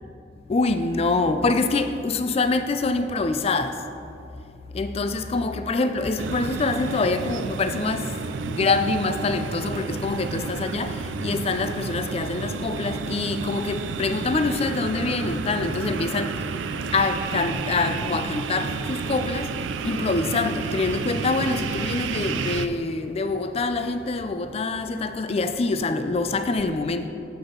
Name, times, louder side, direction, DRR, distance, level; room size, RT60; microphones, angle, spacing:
voice 1, 0.5-3.8 4.7-8.2 8.4-16.5 16.9-19.5 19.8-27.1, left 3 dB, 30° left, 0.4 m, -25 dB
sound 1, 6.2-22.7, right 5 dB, 70° right, 0.3 m, -31 dB
7.8 x 7.0 x 3.8 m
head